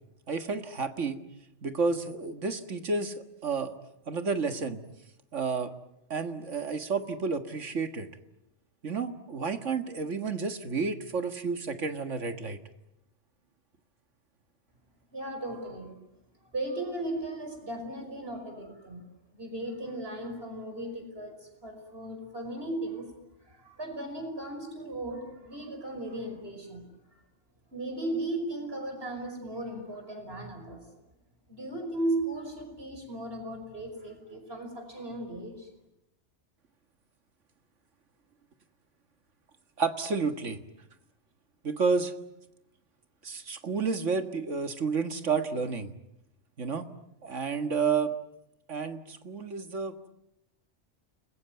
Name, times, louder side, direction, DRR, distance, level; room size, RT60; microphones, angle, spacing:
voice 1, 0.3-1.2 1.6-3.7 4.1-4.8 5.3-5.7 6.1-8.1 8.8-12.6 39.8-40.6 41.6-42.1 43.2-45.9 46.6-46.9 47.2-48.2 48.7-50.1, right 4 dB, 85° right, 8 dB, 2.1 m, -30 dB
voice 2, 15.1-16.0 16.5-19.0 19.3-23.1 23.4-26.9 27.7-31.0 31.5-35.7, right 1 dB, 55° right, 6 dB, 5.7 m, -36 dB
30.0 x 21.5 x 9.3 m, 0.86 s
omnidirectional pair, 1.2 m